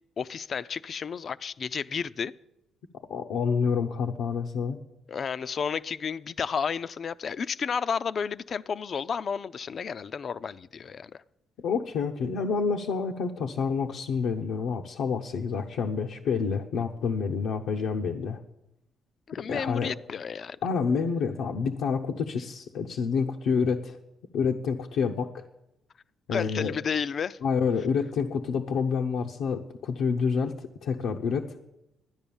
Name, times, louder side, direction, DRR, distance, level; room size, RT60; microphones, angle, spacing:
voice 1, 0.2-2.3 5.1-11.2 19.3-20.6 26.3-27.4, left 6 dB, 50° left, 0.4 m, -32 dB
voice 2, 3.1-4.8 11.6-18.4 19.3-19.9 20.6-24.0 24.3-25.4 26.3-26.7 27.4-31.5, left 5 dB, 80° left, 0.8 m, -28 dB
12.5 x 9.9 x 7.1 m
cardioid pair, 95°, 0 cm